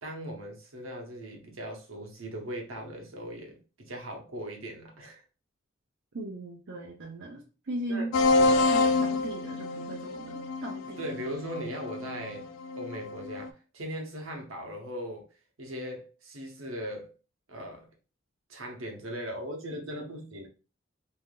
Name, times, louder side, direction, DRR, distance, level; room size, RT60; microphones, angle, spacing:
voice 1, 0.0-5.2 7.9-8.7 11.0-12.5 12.8-15.3 15.6-17.1 17.5-17.9 18.5-20.5, equal, 90° right, 0.9 m, -39 dB
voice 2, 6.1-8.1 8.7-11.1, right 1 dB, 65° right, 0.6 m, -38 dB
sound 1, 8.1-13.5, left 3 dB, 80° left, 0.3 m, -27 dB
3.3 x 2.7 x 2.2 m
head